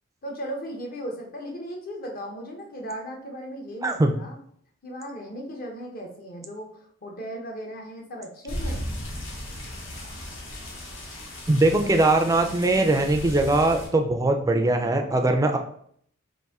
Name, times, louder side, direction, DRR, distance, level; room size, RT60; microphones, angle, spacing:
voice 1, 0.2-4.4 4.8-6.7 7.0-8.8 11.7-11.9, equal, 45° left, 0 dB, 0.9 m, -36 dB
voice 2, 3.8-4.1 11.5-15.6, right 2 dB, 15° right, 4 dB, 0.4 m, -21 dB
sound 1, 8.5-13.9, equal, 75° left, 1.0 m, -36 dB
4.1 x 2.6 x 3.5 m, 0.64 s
head